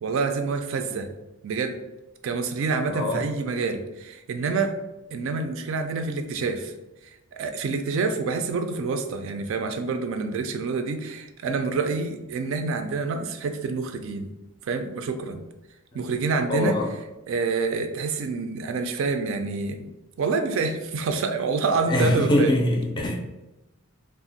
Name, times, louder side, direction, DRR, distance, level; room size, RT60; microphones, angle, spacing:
voice 1, 0.0-1.1 1.4-1.8 2.2-4.8 5.1-6.7 7.4-14.3 14.7-15.4 15.9-16.8 17.3-19.9 20.2-22.5, right 4 dB, 60° right, 7 dB, 0.3 m, -27 dB
voice 2, 2.9-3.2 15.9-16.0 16.5-16.9 21.9-23.1, left 1 dB, 20° left, 1 dB, 0.4 m, -23 dB
2.4 x 2.0 x 3.8 m, 0.99 s
head